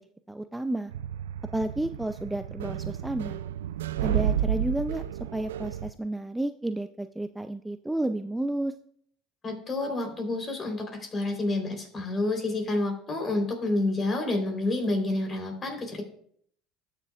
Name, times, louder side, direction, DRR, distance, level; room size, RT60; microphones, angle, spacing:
voice 1, 0.3-0.9 1.5-3.4 4.0-5.0 5.3-8.7, right 1 dB, 10° right, 9 dB, 0.5 m, -31 dB
sound 1, 0.9-5.9, right 10 dB, 85° right, 0.3 m, -31 dB
voice 2, 9.4-16.0, left 2 dB, 35° left, 3 dB, 3.7 m, -29 dB
19.0 x 6.8 x 2.4 m, 0.64 s
hypercardioid pair, 75°, 0 cm